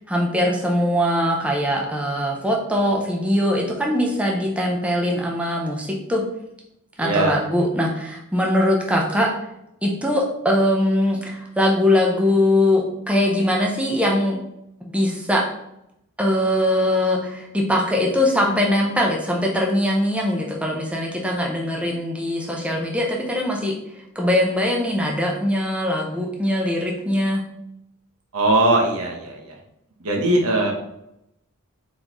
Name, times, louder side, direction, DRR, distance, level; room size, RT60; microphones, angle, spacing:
voice 1, 0.1-6.2 7.0-9.3 9.8-14.4 14.8-15.4 16.2-23.7 24.2-27.4, left 1 dB, 5° right, -1 dB, 0.5 m, -21 dB
voice 2, 7.0-7.4 28.3-29.6 30.0-30.7, right 2 dB, 85° right, 0 dB, 1.0 m, -20 dB
4.1 x 3.9 x 2.9 m, 0.81 s
head